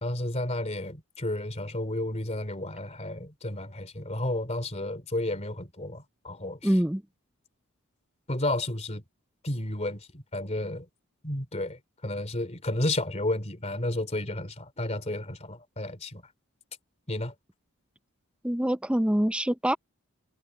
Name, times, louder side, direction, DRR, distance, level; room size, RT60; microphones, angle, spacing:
voice 1, 0.0-6.6 8.3-9.0 9.4-10.9 11.2-16.2 17.1-17.3, left 1 dB, 30° left, 3.1 m, -32 dB
voice 2, 6.6-7.0 18.4-19.8, equal, 5° right, 0.6 m, -25 dB
head